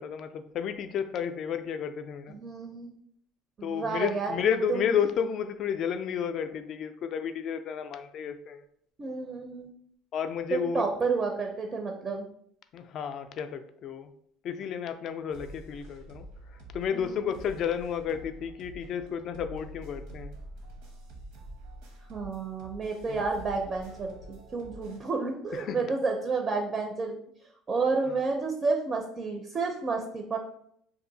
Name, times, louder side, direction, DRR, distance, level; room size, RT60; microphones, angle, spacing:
voice 1, 0.0-2.4 3.6-8.6 10.1-10.8 12.7-14.1 14.4-16.3 16.7-20.4 23.1-23.2 25.5-25.9, left 8 dB, 45° left, 9 dB, 0.3 m, -32 dB
voice 2, 2.3-2.9 3.6-4.4 4.7-4.8 9.0-9.7 10.5-12.2 16.9-17.3 22.1-27.1 27.7-30.4, right 4 dB, 30° right, 3 dB, 0.4 m, -30 dB
sound 1, 15.3-25.0, right 1 dB, 85° right, 0.8 m, -47 dB
2.6 x 2.5 x 3.8 m, 0.69 s
cardioid pair, 135°, 0 cm